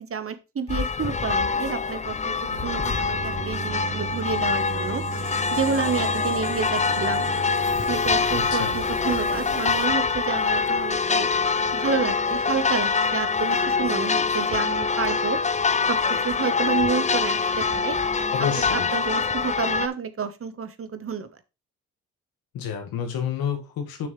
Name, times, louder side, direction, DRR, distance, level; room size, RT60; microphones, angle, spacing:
voice 1, 0.0-2.3 2.6-5.0 5.5-7.3 7.9-11.3 11.7-15.4 15.9-16.0 16.2-18.0 18.7-21.3, right 6 dB, 40° right, 11 dB, 1.1 m, -29 dB
sound 1, 0.7-19.9, left 5 dB, 20° left, 0.5 m, -25 dB
sound 2, 2.5-9.9, right 4 dB, 60° right, 2.8 m, -36 dB
voice 2, 8.3-8.8 18.3-18.9 22.5-24.1, left 8 dB, 80° left, 5 dB, 1.9 m, -29 dB
7.1 x 6.2 x 3.2 m, 0.27 s
supercardioid pair, 60°, 35 cm